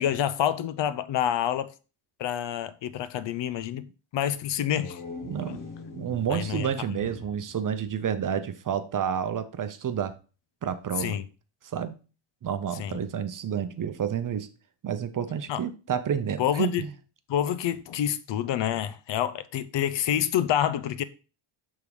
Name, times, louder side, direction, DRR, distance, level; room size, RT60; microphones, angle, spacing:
voice 1, 0.0-1.7 2.2-3.9 4.1-5.0 5.5-5.6 6.3-6.7 11.0-11.2 12.8-13.0 15.5-15.6 16.4-16.9 17.3-21.0, left 10 dB, 60° left, 0.6 m, -27 dB
sound 1, 4.5-8.6, left 4 dB, 40° left, 1.2 m, -43 dB
voice 2, 5.2-5.6 5.9-10.2 10.6-11.2 11.6-12.0 12.4-14.5 14.8-16.9, right 8 dB, 40° right, 0.7 m, -30 dB
6.8 x 3.7 x 4.7 m
cardioid pair, 105°, 49 cm